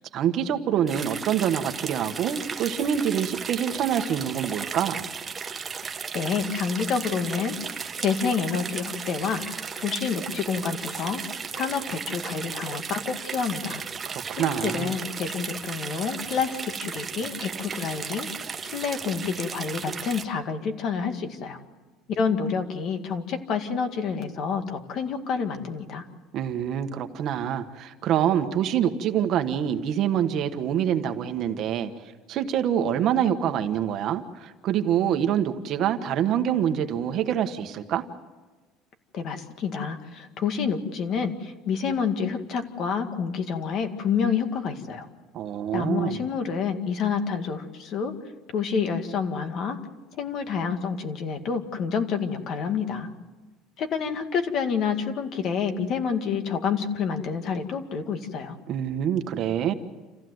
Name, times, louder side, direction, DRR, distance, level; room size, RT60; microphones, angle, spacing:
voice 1, 0.0-5.0 14.1-14.9 26.3-31.9 32.3-38.0 45.3-46.2 58.7-59.7, right 9 dB, 45° right, 8 dB, 1.3 m, -26 dB
sound 1, 0.9-20.2, right 6 dB, 20° right, 0.9 m, -35 dB
voice 2, 6.1-11.2 11.5-13.8 14.4-18.3 18.6-21.6 22.1-26.0 39.1-45.1 45.7-48.1 48.5-49.8 50.2-53.1 53.8-58.6, left 6 dB, 40° left, 7 dB, 2.0 m, -28 dB
28.0 x 15.0 x 7.9 m, 1.3 s
cardioid pair, 170°, 0 cm